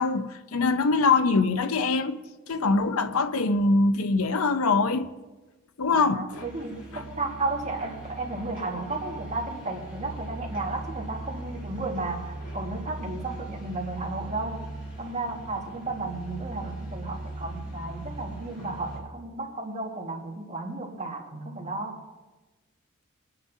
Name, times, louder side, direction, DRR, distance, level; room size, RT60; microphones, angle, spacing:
voice 1, 0.0-2.2 2.5-5.1 5.8-6.4, left 3 dB, 85° left, 0.7 m, -23 dB
voice 2, 5.9-14.6 15.0-22.0, right 2 dB, 35° right, 1.7 m, -33 dB
sound 1, 6.3-19.0, right 2 dB, 40° left, 4.8 m, -39 dB
22.0 x 9.7 x 2.7 m
head